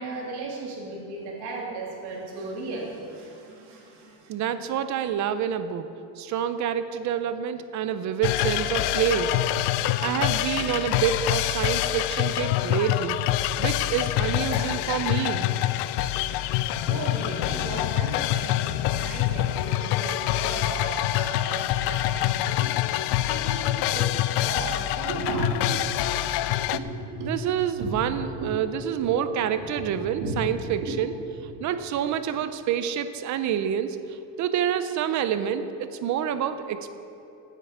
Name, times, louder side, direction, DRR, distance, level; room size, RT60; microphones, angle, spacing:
voice 1, 0.0-4.4 16.8-21.6 21.9-22.7 23.3-26.3 26.7-28.1 28.4-28.6 28.9-29.1 29.5-30.4 30.8-31.0 31.9-32.1, right 2 dB, 75° right, -3 dB, 3.1 m, -35 dB
voice 2, 4.3-5.9 6.2-9.4 10.0-13.2 13.6-15.5 27.2-31.1 31.6-37.0, right 9 dB, 45° right, 11 dB, 0.6 m, -27 dB
sound 1, 8.2-26.8, left 13 dB, 80° left, 0.5 m, -26 dB
9.3 x 9.2 x 8.0 m, 2.9 s
cardioid pair, 170°, 40 cm